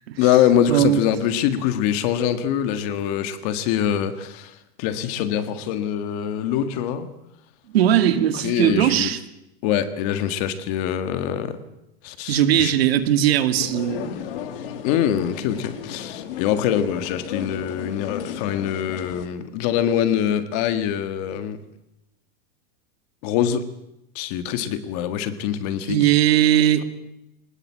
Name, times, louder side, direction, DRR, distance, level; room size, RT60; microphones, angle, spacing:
voice 1, 0.2-7.1 8.4-9.1 9.6-11.6 12.0-12.7 14.8-21.6 23.2-23.7 24.2-26.1, left 9 dB, 40° left, 10 dB, 1.8 m, -24 dB
voice 2, 0.7-1.0 7.7-9.2 12.3-14.2 25.9-26.9, right 11 dB, 80° right, 9 dB, 2.2 m, -19 dB
sound 1, 13.6-19.3, left 9 dB, 65° left, 2.3 m, -34 dB
23.0 x 20.0 x 7.6 m, 0.87 s
supercardioid pair, 175°, 30 cm